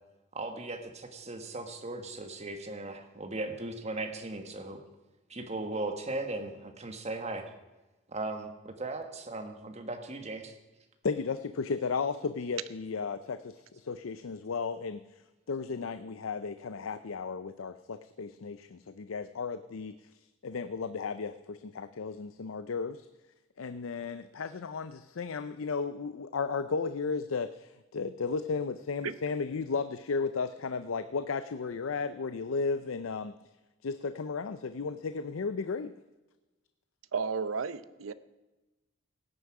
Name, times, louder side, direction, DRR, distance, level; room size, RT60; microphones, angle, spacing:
voice 1, 0.3-4.8 5.3-7.5 8.1-10.5, right 2 dB, 35° right, 6 dB, 1.5 m, -37 dB
voice 2, 11.0-15.0 15.5-19.9 20.4-23.1 23.6-33.3 33.8-35.9, left 4 dB, 85° left, 11 dB, 0.5 m, -34 dB
voice 3, 37.1-38.1, right 5 dB, 90° right, 15 dB, 0.7 m, -33 dB
16.5 x 9.8 x 4.8 m, 1.1 s
head